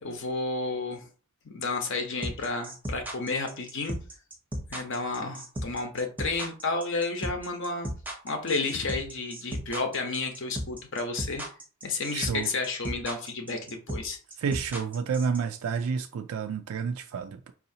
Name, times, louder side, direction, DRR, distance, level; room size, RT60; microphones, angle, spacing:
voice 1, 0.0-1.1 1.4-3.9 4.7-7.9 8.2-11.4 11.8-14.2, left 3 dB, 55° left, 0.8 m, -31 dB
sound 1, 2.2-15.4, equal, 10° right, 0.6 m, -35 dB
voice 2, 12.1-12.5 14.4-17.5, right 6 dB, 70° right, 0.3 m, -30 dB
4.8 x 2.7 x 2.7 m
head